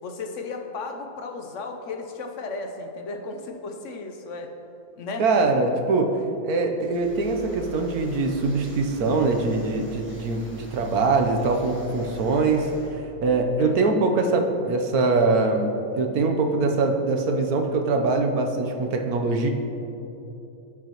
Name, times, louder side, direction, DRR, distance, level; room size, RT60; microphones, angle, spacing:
voice 1, 0.0-4.5 5.0-5.3 13.6-14.0, left 3 dB, 60° left, 4 dB, 1.0 m, -35 dB
voice 2, 5.2-15.7 16.0-19.5, right 3 dB, 85° right, 3 dB, 1.3 m, -23 dB
sound 1, 6.8-12.9, left 2 dB, 10° right, 1.2 m, -45 dB
16.5 x 6.0 x 3.0 m, 3.0 s
omnidirectional pair, 1.5 m